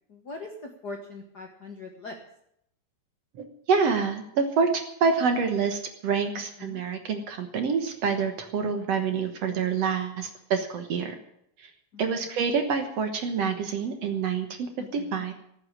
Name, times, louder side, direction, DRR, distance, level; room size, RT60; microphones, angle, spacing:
voice 1, 0.1-2.2 6.3-6.8 9.9-10.0 11.9-12.3 14.8-15.2, left 3 dB, 80° left, 2 dB, 0.9 m, -42 dB
voice 2, 3.4-11.2 11.6-11.7 12.0-15.3, right 5 dB, 60° right, 7 dB, 1.8 m, -27 dB
14.0 x 8.5 x 9.8 m, 0.73 s
omnidirectional pair, 4.2 m